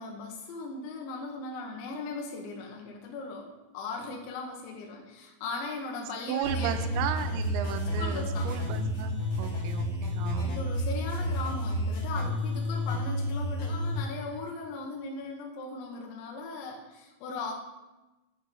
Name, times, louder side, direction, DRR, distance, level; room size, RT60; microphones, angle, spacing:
voice 1, 0.0-7.2 8.0-8.5 10.4-17.5, left 3 dB, 75° left, 0 dB, 3.2 m, -38 dB
voice 2, 6.3-10.5, right 10 dB, 85° right, 7 dB, 2.7 m, -35 dB
sound 1, 6.4-14.0, equal, 45° left, 5.2 m, -30 dB
8.7 x 5.4 x 6.8 m, 1.1 s
omnidirectional pair, 5.5 m